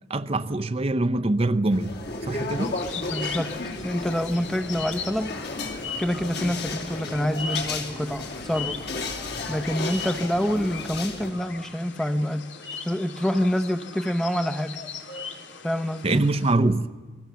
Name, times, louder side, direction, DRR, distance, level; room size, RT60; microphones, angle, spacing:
voice 1, 0.1-2.0 2.3-2.8 16.0-16.9, right 2 dB, 35° right, 0.7 m, -24 dB
sound 1, 1.7-11.3, left 3 dB, 60° left, 3.1 m, -34 dB
sound 2, 2.6-16.5, left 5 dB, 85° left, 2.2 m, -39 dB
voice 2, 2.9-3.6 3.8-5.3 6.0-8.8 9.5-12.5 12.8-14.8 15.6-16.2, equal, ahead, 0.8 m, -27 dB
29.0 x 21.5 x 7.0 m
head